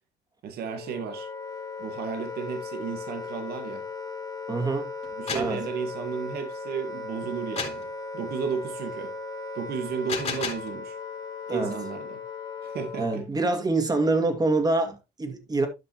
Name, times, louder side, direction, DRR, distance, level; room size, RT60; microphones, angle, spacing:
voice 1, 0.4-1.3 1.8-3.8 5.2-7.9 8.1-9.1 9.5-11.0 11.5-12.2 12.6-13.2, right 6 dB, 70° right, 1.7 m, -33 dB
Wind instrument woodwind instrument, 0.7-13.3, left 4 dB, 25° left, 2.6 m, -37 dB
voice 2, 4.5-4.9 5.3-5.6 11.5-11.7 13.0-15.7, right 3 dB, 20° right, 2.2 m, -25 dB
sound 1, 5.0-5.6 7.6-7.9 9.9-10.7, left 5 dB, 40° left, 3.0 m, -32 dB
12.5 x 5.8 x 3.0 m
cardioid pair, 110°, 17 cm